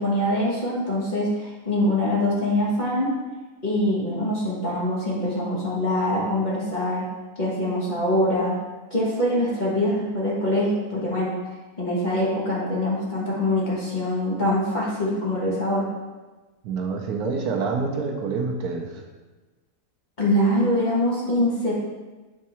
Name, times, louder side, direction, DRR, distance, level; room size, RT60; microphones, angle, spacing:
voice 1, 0.0-3.1 3.6-7.1 7.4-8.6 8.9-11.3 11.8-15.8 20.2-21.7, left 1 dB, 30° left, -6 dB, 1.4 m, -24 dB
voice 2, 16.6-19.0, right 4 dB, 75° right, 2 dB, 1.2 m, -27 dB
7.4 x 3.6 x 4.2 m, 1.2 s
omnidirectional pair, 1.7 m